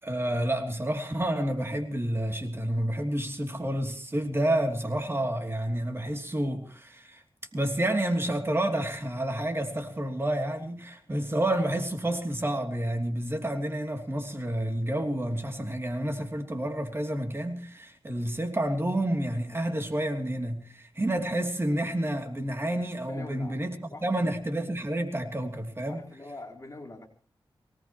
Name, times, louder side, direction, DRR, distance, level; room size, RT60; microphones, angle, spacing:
voice 1, 0.0-7.2 7.5-23.7 24.0-26.0, right 1 dB, 25° right, 3.0 m, -29 dB
voice 2, 23.0-23.6 23.8-24.2 25.9-27.1, left 2 dB, 35° left, 4.2 m, -44 dB
24.0 x 18.5 x 3.1 m
wide cardioid pair, 80°, 9 cm